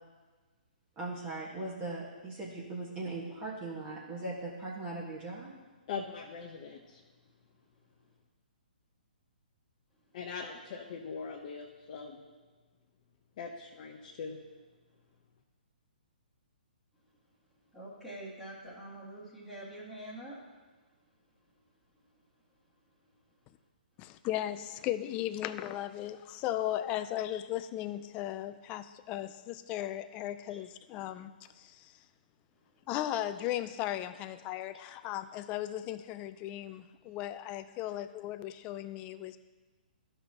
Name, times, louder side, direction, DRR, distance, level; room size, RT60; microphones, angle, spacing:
voice 1, 1.0-5.5, right 2 dB, 25° right, -5 dB, 1.5 m, -39 dB
voice 2, 5.9-7.0 10.1-12.2 13.4-14.4, left 5 dB, 45° left, -1 dB, 0.9 m, -41 dB
voice 3, 17.7-20.4, right 1 dB, 5° right, -8 dB, 1.8 m, -45 dB
voice 4, 24.0-31.9 32.9-39.4, left 13 dB, 25° left, 12 dB, 0.4 m, -36 dB
13.0 x 5.6 x 2.9 m, 1.3 s
hypercardioid pair, 135°, 5 cm